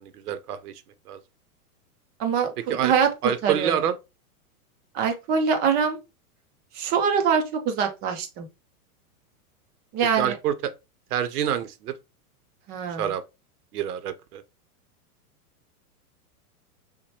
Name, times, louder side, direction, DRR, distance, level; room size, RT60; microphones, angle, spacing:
voice 1, 0.0-0.7 1.1-1.2 2.7-2.9 3.2-3.9 10.2-10.5 11.1-11.9 13.0-13.2 13.7-14.4, right 9 dB, 80° right, 0.7 m, -27 dB
voice 2, 2.2-3.1 3.4-3.8 4.9-6.0 6.7-8.5 9.9-10.4 12.7-13.0, right 6 dB, 20° right, 0.4 m, -24 dB
6.0 x 2.2 x 2.8 m
hypercardioid pair, 135°, 45 cm